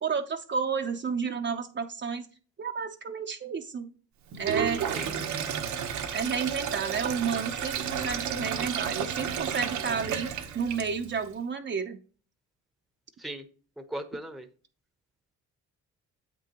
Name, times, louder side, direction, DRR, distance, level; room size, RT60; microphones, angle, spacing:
voice 1, 0.0-2.3 2.6-3.9 4.4-4.9 6.1-12.0, right 6 dB, 40° right, 5 dB, 0.7 m, -31 dB
Sink (filling or washing), 4.3-11.2, right 8 dB, 70° right, 1.1 m, -32 dB
voice 2, 13.8-14.5, right 1 dB, ahead, 8 dB, 0.9 m, -37 dB
7.8 x 6.0 x 3.0 m, 0.40 s
cardioid pair, 90°, 30 cm